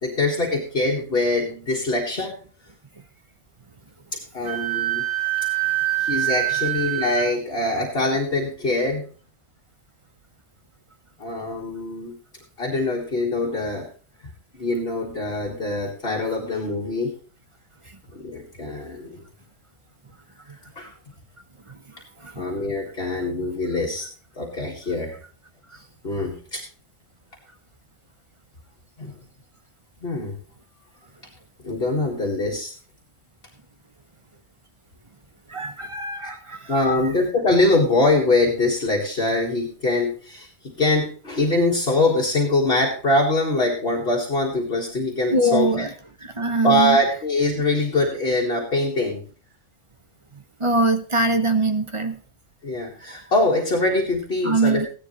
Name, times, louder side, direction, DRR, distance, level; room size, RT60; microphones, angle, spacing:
voice 1, 0.0-2.4 4.1-5.0 6.0-9.0 11.2-12.1 12.6-13.9 14.6-17.2 18.1-19.2 20.8-20.9 22.4-24.1 24.4-25.2 25.7-26.6 29.0-29.1 30.0-30.4 31.6-32.7 36.7-45.9 46.6-49.2 52.6-54.9, left 2 dB, 50° left, -2 dB, 2.0 m, -23 dB
Wind instrument woodwind instrument, 4.4-7.2, right 14 dB, 45° right, 6.1 m, -24 dB
voice 2, 21.7-22.4 25.7-25.8 35.5-37.1 45.3-45.9 46.2-47.0 50.3-52.2 54.4-54.9, right 2 dB, 30° right, 8 dB, 0.8 m, -23 dB
15.5 x 10.5 x 3.2 m, 0.39 s
omnidirectional pair, 1.3 m